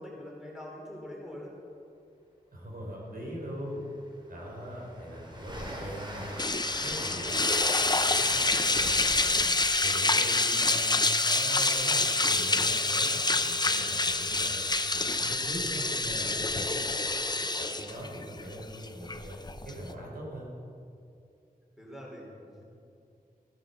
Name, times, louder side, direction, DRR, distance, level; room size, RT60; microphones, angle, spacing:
voice 1, 0.0-1.5 21.8-22.6, left 1 dB, 5° right, -3 dB, 4.2 m, -43 dB
voice 2, 2.5-3.8 4.3-6.3 6.8-7.4 7.8-16.9 17.6-20.5, equal, 65° right, -3 dB, 4.0 m, -41 dB
Train, 3.3-3.4 3.8-11.6, equal, 30° right, 2.9 m, -42 dB
sound 1, 6.4-19.9, left 3 dB, 25° left, 0.7 m, -27 dB
15.5 x 10.0 x 6.8 m, 2.5 s
wide cardioid pair, 70°, 16 cm